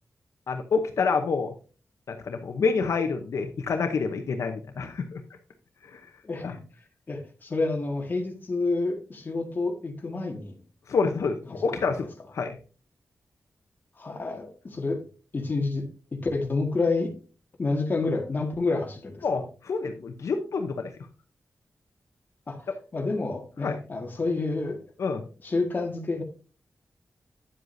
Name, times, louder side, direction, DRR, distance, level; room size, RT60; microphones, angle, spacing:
voice 1, 0.5-1.5 2.1-5.2 5.9-6.0 6.4-6.5 10.9-12.1 12.3-12.5 19.2-20.9 23.6-23.7 25.0-25.2, left 4 dB, 80° left, 5 dB, 0.8 m, -27 dB
voice 2, 6.2-6.6 7.1-10.6 11.4-11.9 13.9-15.0 15.3-15.8 16.1-17.1 17.6-19.4 22.5-24.8 25.4-26.2, left 3 dB, 40° left, 2 dB, 1.7 m, -29 dB
9.5 x 7.7 x 2.7 m, 0.36 s
wide cardioid pair, 130°, 5 cm